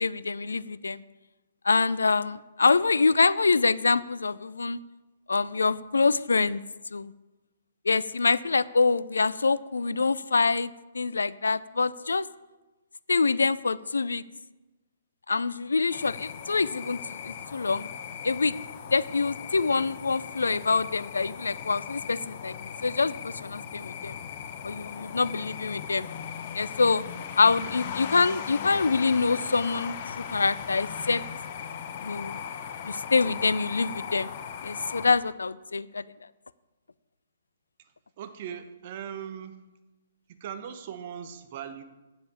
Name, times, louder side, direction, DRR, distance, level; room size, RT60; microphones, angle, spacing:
voice 1, 0.0-1.0 1.6-4.8 5.3-6.6 6.9-7.1 7.9-12.3 13.1-14.2 15.3-17.9 18.2-18.5 18.9-22.5 22.8-24.1 24.6-26.1 26.5-27.0 27.4-31.2 32.0-32.4 32.9-34.3 34.6-36.0, left 4 dB, 80° left, 18 dB, 0.4 m, -25 dB
sound 1, 15.9-35.1, left 8 dB, 45° left, 0.9 m, -38 dB
voice 2, 37.8-39.6 40.3-41.8, right 8 dB, 45° right, 8 dB, 1.1 m, -39 dB
7.8 x 7.6 x 8.5 m, 1.1 s
figure-of-eight pair, 125°, 0 cm